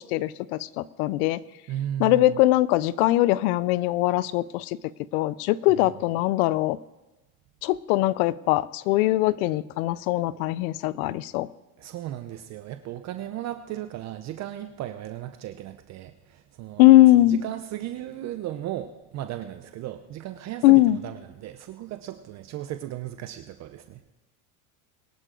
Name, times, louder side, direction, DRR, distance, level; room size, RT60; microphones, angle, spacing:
voice 1, 0.0-1.4 2.0-4.6 5.1-6.8 7.6-11.5 16.8-17.4 20.6-21.0, left 16 dB, 80° left, 20 dB, 0.6 m, -21 dB
voice 2, 1.7-2.4 5.8-5.9 11.8-16.9 17.1-24.1, right 12 dB, 40° right, 8 dB, 0.7 m, -36 dB
22.0 x 11.5 x 3.8 m, 1.1 s
supercardioid pair, 140°, 43 cm